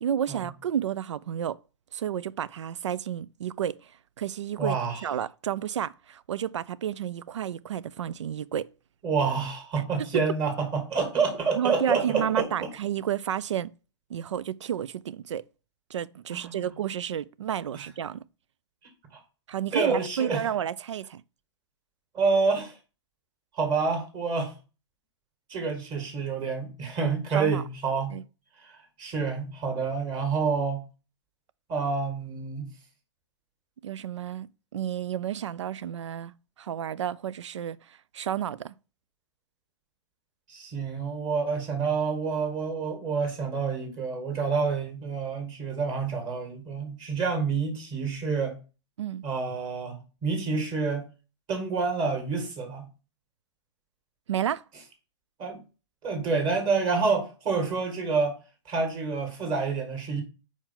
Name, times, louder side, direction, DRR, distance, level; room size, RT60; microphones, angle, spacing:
voice 1, 0.0-1.6 1.9-3.9 4.2-4.8 5.0-8.7 10.0-10.1 11.6-13.7 14.1-15.4 15.9-18.2 19.5-21.2 27.3-27.6 28.1-28.2 33.8-36.3 36.6-38.7 49.0-49.2 54.3-54.6, right 9 dB, 80° right, 0.4 m, -31 dB
voice 2, 4.6-5.1 9.0-12.5 16.3-16.7 17.7-17.8 19.1-19.2 19.7-20.4 22.1-22.8 23.5-24.5 25.5-28.1 28.6-28.7 29.0-30.8 31.7-32.7 40.5-48.6 49.2-51.1 51.5-52.9 55.4-55.6 56.0-58.4 58.7-60.2, right 4 dB, 30° right, 1.9 m, -28 dB
4.5 x 4.5 x 5.7 m
hypercardioid pair, 130°, 15 cm